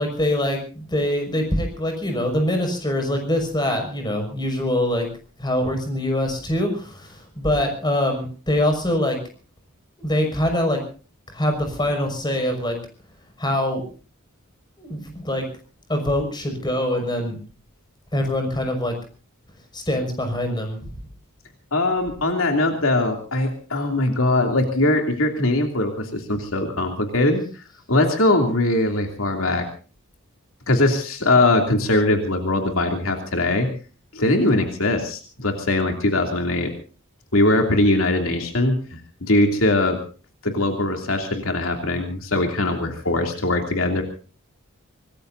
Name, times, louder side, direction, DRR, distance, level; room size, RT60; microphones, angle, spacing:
voice 1, 0.0-5.1 5.4-9.2 10.0-10.8 11.3-12.8 13.4-13.8 14.8-15.5 15.9-17.4 18.1-19.0 19.7-20.9, left 1 dB, 20° left, 4 dB, 5.8 m, -24 dB
voice 2, 21.7-27.4 27.9-29.6 30.7-33.7 34.1-36.7 37.3-40.0 40.4-44.0, left 2 dB, 70° left, 3 dB, 2.9 m, -21 dB
25.5 x 20.0 x 2.7 m, 0.38 s
head